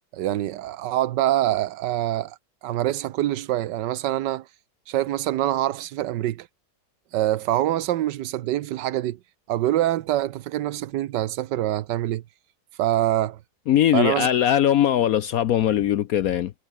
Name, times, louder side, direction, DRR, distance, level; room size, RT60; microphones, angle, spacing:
voice 1, 0.1-2.4 2.6-4.5 4.9-6.5 7.1-9.2 9.5-12.2 12.8-13.4 13.9-14.3, right 14 dB, 85° right, 1.4 m, -25 dB
voice 2, 13.7-16.5, left 11 dB, 65° left, 1.0 m, -20 dB
omnidirectional pair, 1.8 m